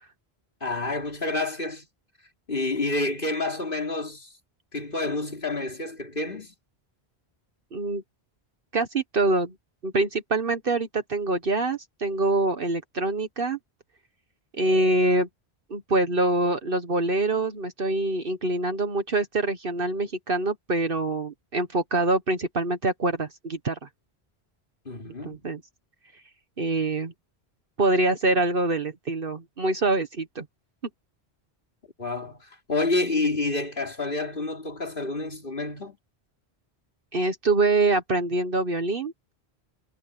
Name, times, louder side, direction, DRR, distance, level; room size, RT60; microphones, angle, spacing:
voice 1, 0.6-1.9 2.5-4.3 4.7-6.5 24.9-25.4 32.0-36.0, left 2 dB, 55° left, 3.7 m, -29 dB
voice 2, 7.7-8.0 8.7-9.5 9.8-13.6 14.5-15.3 15.7-23.9 25.2-25.6 26.6-27.1 27.8-30.4 37.1-39.1, right 2 dB, 60° right, 1.5 m, -25 dB
omnidirectional pair, 1.1 m